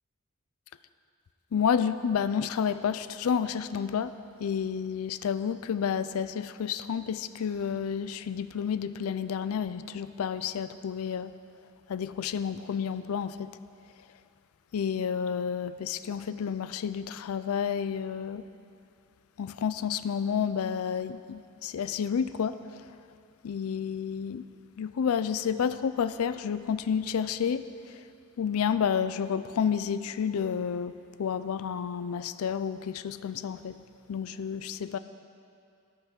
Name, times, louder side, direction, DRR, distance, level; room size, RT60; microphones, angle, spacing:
voice 1, 1.5-4.1 4.4-11.3 11.9-13.5 14.7-18.4 19.4-22.8 23.4-24.5 24.8-28.0 28.4-30.9 31.2-33.8 34.1-35.0, left 7 dB, 75° left, 13 dB, 0.4 m, -30 dB
12.5 x 5.6 x 6.2 m, 2.4 s
head